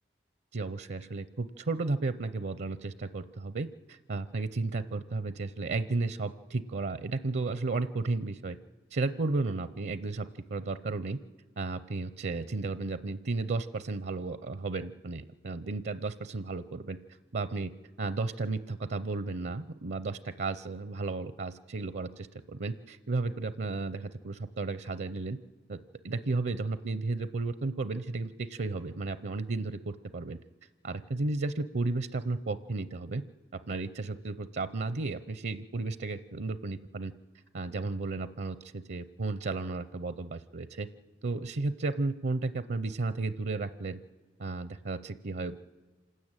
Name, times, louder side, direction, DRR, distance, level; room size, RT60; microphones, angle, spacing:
voice 1, 0.5-8.6 8.9-11.2 11.6-17.0 17.3-17.7 18.0-25.4 25.7-25.8 26.0-30.4 30.8-33.2 33.7-37.1 37.5-40.9 41.2-44.0 44.4-45.6, right 3 dB, 65° right, 13 dB, 0.6 m, -33 dB
27.0 x 13.0 x 8.9 m, 1.3 s
head